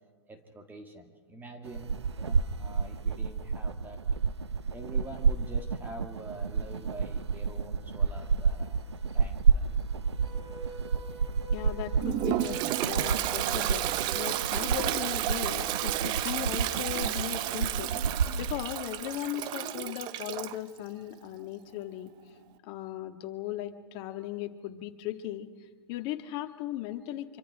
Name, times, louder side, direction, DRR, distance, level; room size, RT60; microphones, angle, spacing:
voice 1, 0.3-4.0 4.7-8.8 9.1-9.8, right 2 dB, 15° right, 5 dB, 2.1 m, -46 dB
sound 1, 1.7-18.6, right 5 dB, 85° right, 0.9 m, -30 dB
sound 2, 10.1-16.1, right 4 dB, 55° right, 6.4 m, -44 dB
voice 2, 11.5-13.9 14.1-17.9 18.4-22.1 22.6-25.5 25.9-27.4, left 13 dB, 40° left, 6 dB, 1.8 m, -37 dB
Toilet flush, 12.0-20.6, right 14 dB, 30° right, 0.7 m, -32 dB
25.5 x 24.5 x 4.9 m, 1.4 s
hypercardioid pair, 120°, 14 cm